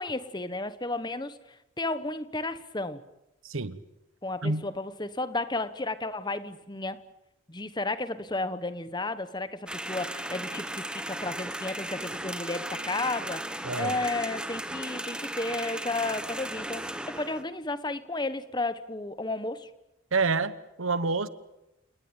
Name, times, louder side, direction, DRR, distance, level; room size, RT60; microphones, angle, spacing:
voice 1, 0.0-3.0 4.2-7.0 7.5-19.7, left 2 dB, 20° left, 1.1 m, -33 dB
voice 2, 3.4-3.8 4.4-4.7 13.6-14.0 20.1-21.3, right 3 dB, 70° right, 1.1 m, -28 dB
sound 1, 9.7-17.4, right 1 dB, 5° right, 1.2 m, -36 dB
30.0 x 19.0 x 9.0 m
head